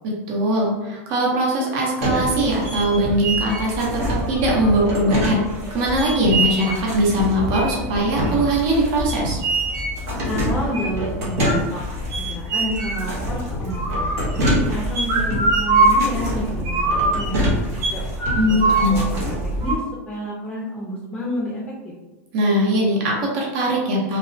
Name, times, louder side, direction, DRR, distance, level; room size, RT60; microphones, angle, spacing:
voice 1, 0.3-5.4 5.7-9.4 18.4-19.0 22.3-24.2, right 1 dB, 50° right, -3 dB, 0.8 m, -21 dB
sound 1, 2.0-19.7, right 1 dB, 80° right, 1.0 m, -23 dB
voice 2, 10.3-11.8 12.2-18.0 18.5-21.9, left 1 dB, 15° left, -5 dB, 0.4 m, -30 dB
2.9 x 2.0 x 2.6 m, 1.1 s
supercardioid pair, 150°, 8 cm